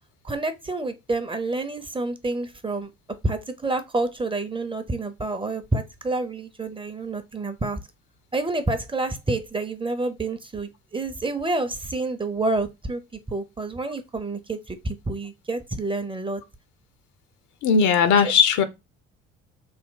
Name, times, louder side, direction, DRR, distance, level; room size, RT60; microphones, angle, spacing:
voice 1, 0.2-2.9 3.2-7.8 8.3-13.0 13.3-16.4, right 2 dB, 15° right, 0.7 m, -28 dB
voice 2, 17.6-18.6, left 6 dB, 60° left, 0.8 m, -18 dB
3.6 x 2.2 x 3.8 m
hypercardioid pair, 60°, 33 cm